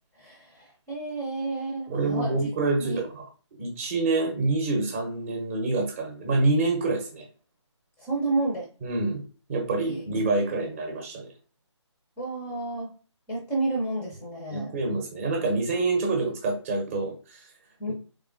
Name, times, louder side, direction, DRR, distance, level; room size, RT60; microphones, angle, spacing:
voice 1, 0.2-2.4 2.8-3.0 8.0-8.7 9.8-10.0 10.3-10.7 12.2-12.9 13.3-14.8 17.8-17.9, right 2 dB, 5° left, 0.5 m, -31 dB
voice 2, 1.9-3.2 3.6-7.2 8.8-9.2 9.5-11.3 14.5-17.4, right 3 dB, 25° right, 0.7 m, -27 dB
3.6 x 3.1 x 2.5 m
figure-of-eight pair, 150°, 16 cm